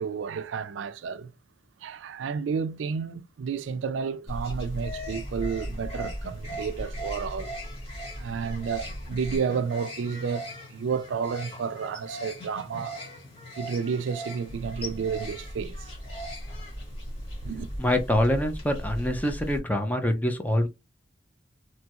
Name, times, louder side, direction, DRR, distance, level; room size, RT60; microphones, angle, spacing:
voice 1, 0.0-1.3 1.8-7.6 8.2-13.0 13.6-15.9 17.4-17.7, right 6 dB, 75° right, 0.4 m, -31 dB
sound 1, 4.3-19.6, equal, 30° left, 1.3 m, -37 dB
voice 2, 17.8-20.7, left 1 dB, 10° left, 0.5 m, -25 dB
3.0 x 2.3 x 2.8 m
head